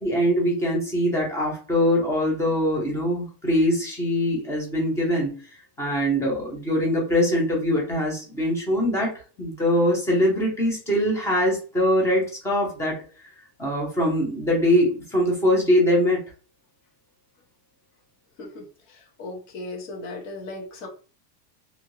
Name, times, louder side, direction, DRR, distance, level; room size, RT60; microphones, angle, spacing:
voice 1, 0.0-5.3 5.8-9.1 9.4-13.0 13.6-16.2, equal, 5° left, -2 dB, 0.3 m, -22 dB
voice 2, 18.4-20.9, left 2 dB, 55° left, -1 dB, 1.2 m, -37 dB
2.6 x 2.3 x 3.0 m, 0.37 s
supercardioid pair, 150°, 48 cm